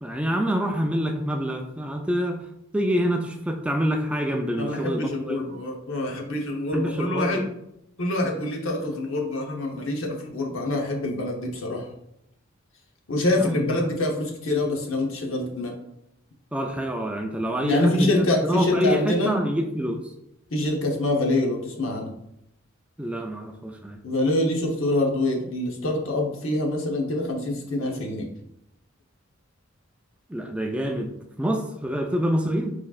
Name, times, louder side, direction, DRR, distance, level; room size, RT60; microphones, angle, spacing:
voice 1, 0.0-2.4 2.7-5.4 6.7-7.5 13.3-13.6 16.5-20.1 23.0-24.0 30.3-31.1 31.4-32.8, equal, 5° right, 3 dB, 0.3 m, -26 dB
voice 2, 4.6-7.4 8.0-11.8 13.1-15.7 17.6-19.3 20.5-22.1 24.0-28.3, left 1 dB, 80° left, 1 dB, 0.9 m, -25 dB
4.6 x 4.3 x 2.4 m, 0.79 s
head